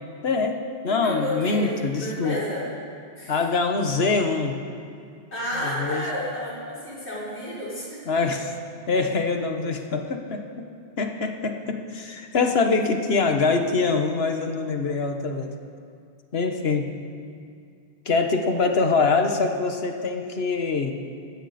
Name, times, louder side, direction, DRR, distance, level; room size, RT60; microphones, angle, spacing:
voice 1, 0.2-0.6 0.8-2.4 3.3-4.6 5.6-6.0 8.1-8.6 8.9-10.7 11.0-15.5 16.3-17.0 18.0-20.9, left 4 dB, 70° left, 5 dB, 1.5 m, -24 dB
voice 2, 0.8-2.7 3.2-3.4 5.3-8.0, equal, 85° left, -7 dB, 5.3 m, -31 dB
20.0 x 16.0 x 4.3 m, 2.3 s
omnidirectional pair, 1.1 m